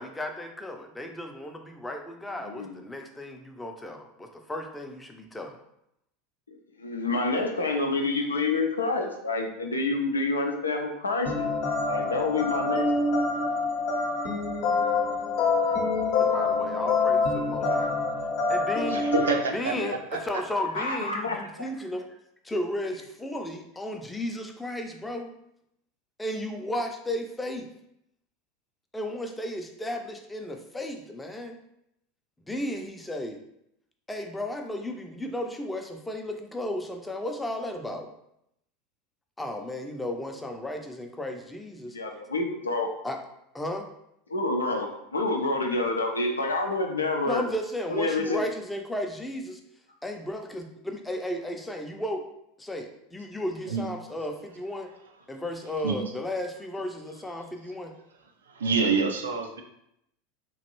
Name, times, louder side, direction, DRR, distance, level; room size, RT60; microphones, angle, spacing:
voice 1, 0.0-5.6 16.2-17.9 18.5-19.0 19.5-22.0 22.4-25.3 26.2-27.7 28.9-31.6 32.5-33.4 34.1-38.1 39.4-42.0 43.0-43.2 43.5-43.9 47.2-49.6 50.0-52.2 52.6-54.9 55.3-57.9, left 1 dB, 10° left, 3 dB, 0.5 m, -34 dB
voice 2, 2.4-2.8 6.8-12.9 19.8-20.0 20.7-21.5 41.9-42.9 44.3-47.4 47.9-48.4, left 3 dB, 85° left, 3 dB, 0.4 m, -28 dB
sound 1, 11.2-19.4, left 3 dB, 55° left, 0.7 m, -26 dB
voice 3, 18.9-20.4 53.7-53.8 55.8-56.0 58.5-59.6, right 4 dB, 80° right, 4 dB, 0.4 m, -27 dB
3.0 x 2.5 x 2.9 m, 0.78 s
figure-of-eight pair, 80°, 0 cm